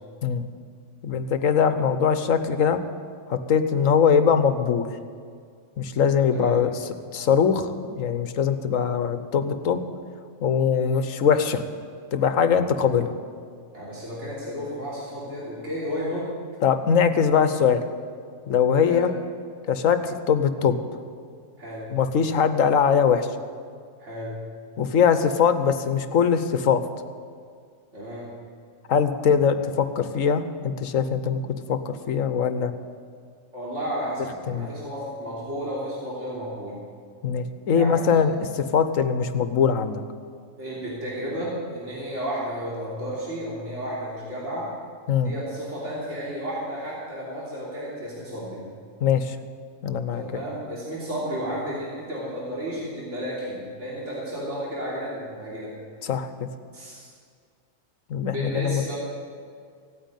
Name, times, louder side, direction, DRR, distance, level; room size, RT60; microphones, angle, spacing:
voice 1, 1.0-2.8 3.3-4.9 5.8-6.7 7.1-9.8 10.4-11.6 12.1-13.1 16.6-17.8 18.5-19.1 19.7-20.8 21.9-23.3 24.8-26.8 28.9-31.4 31.7-32.7 34.5-34.7 37.2-40.0 45.1-45.3 49.0-49.4 49.8-50.2 56.0-56.3 58.1-58.8, left 7 dB, 75° left, 10 dB, 1.3 m, -22 dB
voice 2, 13.7-16.3 18.8-19.1 21.6-21.9 24.0-24.4 27.9-28.3 33.5-36.8 37.7-38.0 40.6-44.7 45.2-48.6 50.1-55.7 56.7-57.1 58.3-59.0, equal, 60° right, -7 dB, 3.5 m, -32 dB
16.0 x 9.2 x 9.1 m, 2.1 s
omnidirectional pair, 1.4 m